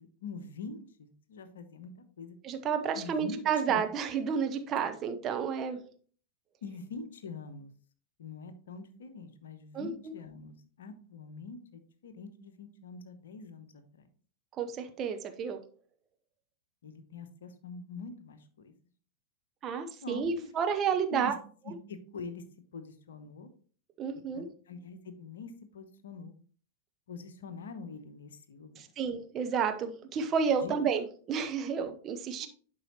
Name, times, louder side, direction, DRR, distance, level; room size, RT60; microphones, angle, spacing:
voice 1, 0.0-2.4 2.9-3.9 6.6-7.7 8.2-14.1 16.8-18.7 20.0-20.3 21.1-21.3 21.6-22.4 22.7-23.5 24.0-26.3 27.1-28.9 30.6-30.7 32.4-32.5, left 4 dB, 65° left, 10 dB, 0.9 m, -44 dB
voice 2, 2.4-5.8 9.7-9.9 14.6-15.6 19.6-21.3 24.0-24.5 28.8-32.5, right 6 dB, 30° right, 6 dB, 0.9 m, -31 dB
11.0 x 4.7 x 3.0 m, 0.44 s
figure-of-eight pair, 90°, 0 cm